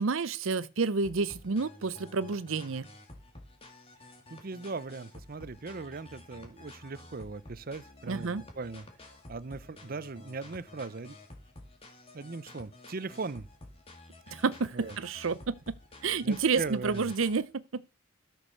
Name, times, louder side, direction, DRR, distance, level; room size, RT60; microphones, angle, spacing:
voice 1, 0.0-2.9 8.1-8.4 14.3-15.7 16.0-17.8, right 4 dB, 85° right, 0.7 m, -30 dB
sound 1, 1.0-17.4, left 1 dB, 30° left, 2.5 m, -51 dB
voice 2, 4.3-8.8 9.3-11.2 12.1-13.5 14.7-14.9 16.2-17.1, right 3 dB, 45° right, 0.7 m, -39 dB
13.0 x 6.3 x 6.5 m
head